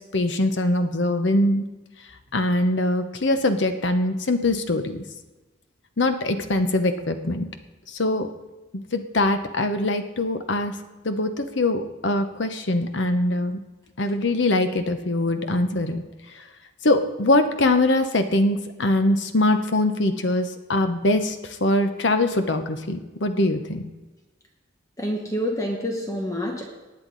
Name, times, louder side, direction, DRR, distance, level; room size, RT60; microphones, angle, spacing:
voice 1, 0.0-1.6 2.3-5.0 6.0-7.5 7.9-8.3 8.7-10.7 11.0-13.6 14.0-16.0 16.3-16.4 16.8-23.9, left 2 dB, 70° left, 8 dB, 1.0 m, -23 dB
voice 2, 25.0-26.7, equal, 15° left, 1 dB, 1.1 m, -27 dB
19.0 x 8.1 x 4.0 m, 1.1 s
head